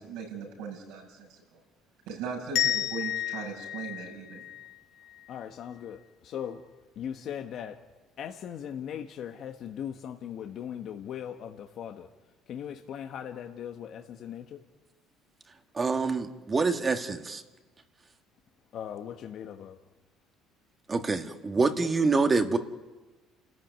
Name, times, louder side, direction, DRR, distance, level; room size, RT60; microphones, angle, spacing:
voice 1, 0.0-1.4 2.1-4.4, right 5 dB, 80° right, 0 dB, 7.8 m, -38 dB
sound 1, 2.5-5.3, left 12 dB, 85° left, 2.6 m, -32 dB
voice 2, 5.3-6.6 7.0-7.8 8.2-12.1 12.5-14.6 18.7-19.8, left 9 dB, 60° left, 5 dB, 1.3 m, -39 dB
voice 3, 15.8-17.4 20.9-22.6, right 4 dB, 25° right, 6 dB, 1.8 m, -26 dB
29.5 x 14.0 x 9.5 m, 1.2 s
cardioid pair, 100°, 0 cm